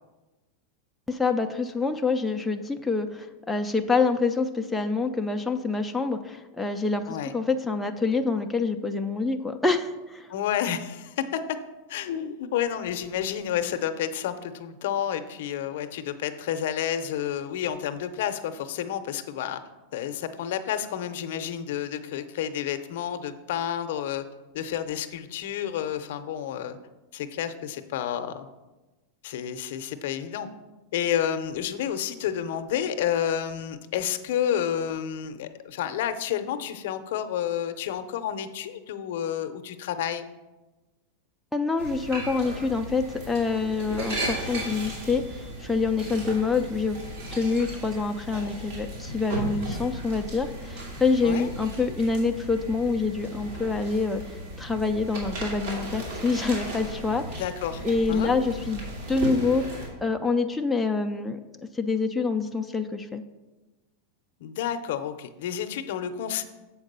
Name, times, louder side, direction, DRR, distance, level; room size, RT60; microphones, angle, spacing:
voice 1, 1.1-10.3 41.5-47.0 47.3-57.4 57.8-58.8 59.1-59.7 60.0-61.4 61.7-63.2, left 4 dB, 5° left, 3 dB, 0.3 m, -26 dB
voice 2, 10.3-11.4 11.9-19.6 19.9-24.2 24.5-26.8 27.1-28.5 29.2-30.5 30.9-40.3 51.2-51.5 57.3-57.8 58.1-58.3 64.4-66.4, left 9 dB, 60° left, 10 dB, 0.6 m, -30 dB
sound 1, 41.8-59.9, right 1 dB, 60° right, 2.4 m, -36 dB
7.2 x 4.7 x 6.6 m, 1.1 s
supercardioid pair, 165°, 0 cm